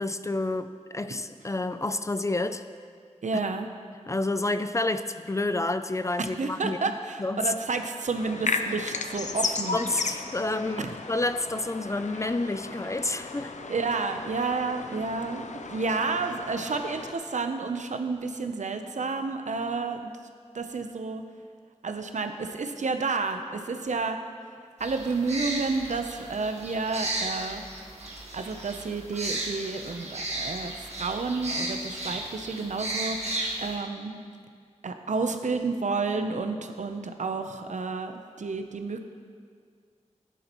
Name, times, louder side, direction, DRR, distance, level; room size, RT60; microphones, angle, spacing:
voice 1, 0.0-2.6 4.1-6.9 7.2-7.5 9.7-13.5, left 2 dB, 25° left, 11 dB, 0.4 m, -29 dB
voice 2, 3.2-3.7 6.2-9.8 13.7-15.4 15.7-20.1 20.5-21.2 21.8-24.2 24.8-27.6 28.3-34.2 34.8-39.0, right 4 dB, 75° right, 6 dB, 0.7 m, -30 dB
sound 1, 8.2-17.1, left 4 dB, 75° left, 0.6 m, -35 dB
sound 2, 24.8-33.7, right 2 dB, 60° right, 1.5 m, -34 dB
13.5 x 10.0 x 3.0 m, 2.1 s
wide cardioid pair, 85°, 12 cm